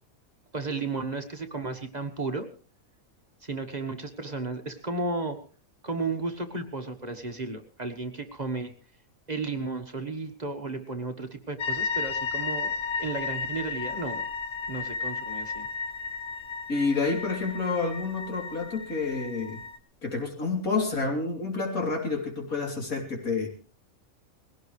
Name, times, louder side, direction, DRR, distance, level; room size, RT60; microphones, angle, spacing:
voice 1, 0.5-2.5 3.4-5.4 5.8-8.7 9.3-14.3 14.7-15.7, right 3 dB, 30° right, 5 dB, 1.5 m, -33 dB
sound 1, 11.6-19.8, left 5 dB, 60° left, 1.4 m, -34 dB
voice 2, 16.7-19.6 20.0-23.5, left 4 dB, 85° left, 1 dB, 3.8 m, -29 dB
20.5 x 17.0 x 3.2 m, 0.38 s
omnidirectional pair, 1.4 m